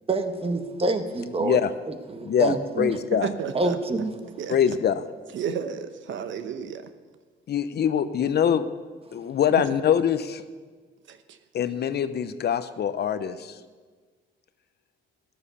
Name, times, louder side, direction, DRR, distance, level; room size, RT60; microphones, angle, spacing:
voice 1, 0.1-1.6 2.1-2.9 3.5-4.1, right 3 dB, 30° right, 8 dB, 1.4 m, -26 dB
voice 2, 1.4-1.7 2.2-3.3 4.5-5.0 7.5-8.6 9.1-10.4 11.5-13.6, left 8 dB, 55° left, 12 dB, 0.8 m, -24 dB
voice 3, 3.1-3.8 4.4-4.6 5.3-6.9 11.1-11.4, right 7 dB, 70° right, 9 dB, 1.0 m, -32 dB
12.5 x 10.5 x 6.8 m, 1.4 s
cardioid pair, 90°, 20 cm